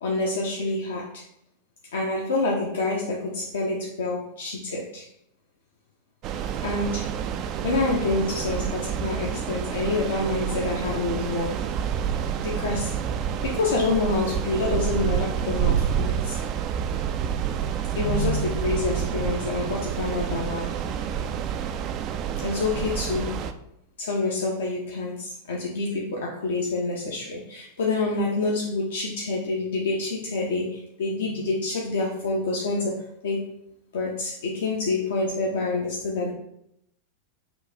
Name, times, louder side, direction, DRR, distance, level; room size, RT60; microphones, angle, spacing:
voice 1, 0.0-1.2 1.9-5.1 6.6-7.1 7.6-11.6 12.4-12.9 13.4-16.5 17.9-20.8 22.4-23.4 24.0-33.5 33.9-36.3, left 3 dB, 60° left, -2 dB, 0.6 m, -27 dB
sound 1, 6.2-23.5, right 8 dB, 35° right, 0.3 m, -28 dB
6.0 x 2.4 x 3.4 m, 0.76 s
figure-of-eight pair, 90°, 0 cm